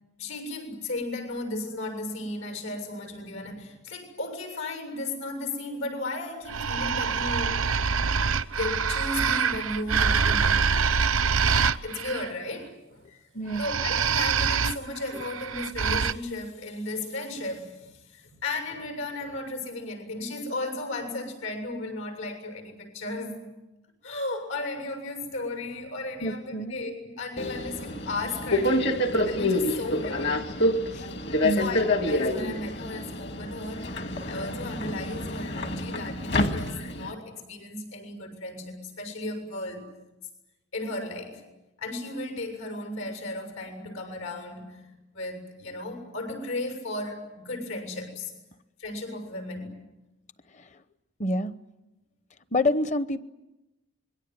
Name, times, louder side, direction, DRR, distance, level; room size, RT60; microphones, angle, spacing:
voice 1, 0.2-7.9 8.5-10.8 11.8-13.1 13.6-23.4 24.0-29.0 29.2-30.4 31.6-39.9 40.7-41.4 41.8-44.8 45.1-48.3 48.8-49.8, left 2 dB, 85° left, 7 dB, 7.3 m, -35 dB
sound 1, 6.5-12.3 13.5-16.1, right 6 dB, 85° right, 0.9 m, -25 dB
voice 2, 13.3-13.7 15.1-15.2 26.2-26.8 30.9-31.1 31.4-31.7 50.5-50.7 51.2-51.6 52.5-53.2, left 1 dB, 35° left, 14 dB, 0.9 m, -27 dB
Subway metro underground, 27.4-37.1, left 1 dB, 55° left, 2.0 m, -27 dB
26.5 x 22.5 x 9.6 m, 1.0 s
head